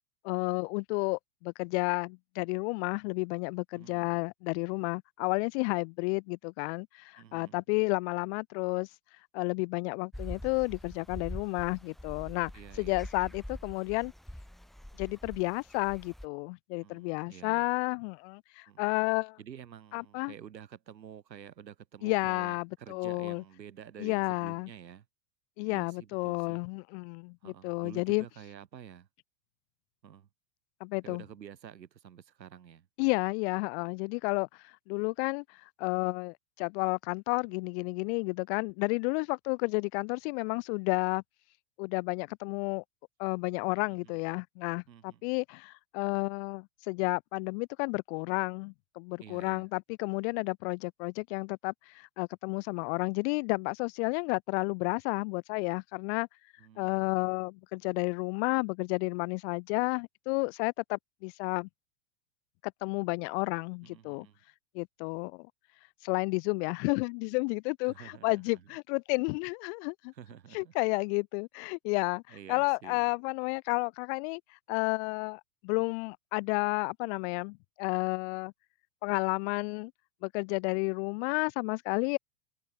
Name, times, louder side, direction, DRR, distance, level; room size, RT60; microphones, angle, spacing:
voice 1, 0.2-8.9 9.3-12.5 12.8-14.1 15.0-19.4 19.9-20.3 22.0-23.4 24.0-24.7 25.6-28.2 30.8-31.2 33.0-41.2 41.8-42.8 43.2-56.3 56.8-61.7 62.8-64.3 64.7-65.5 66.0-70.1 70.5-72.2 72.5-74.4 74.7-78.5 79.0-79.9 80.2-82.2, left 33 dB, 40° left, 1.0 m, -31 dB
voice 2, 3.7-4.2 7.2-7.6 12.5-13.1 16.8-17.7 18.7-18.9 19.4-25.1 25.6-26.6 27.4-29.1 30.0-30.3 31.0-32.9 43.8-44.2 44.9-45.2 49.2-49.7 56.6-57.4 63.8-64.4 67.8-68.6 70.1-70.7 72.3-73.1, right 9 dB, 90° right, 6.9 m, -50 dB
sound 1, 10.1-16.3, equal, ahead, 0.4 m, -44 dB
hypercardioid pair, 125°, 49 cm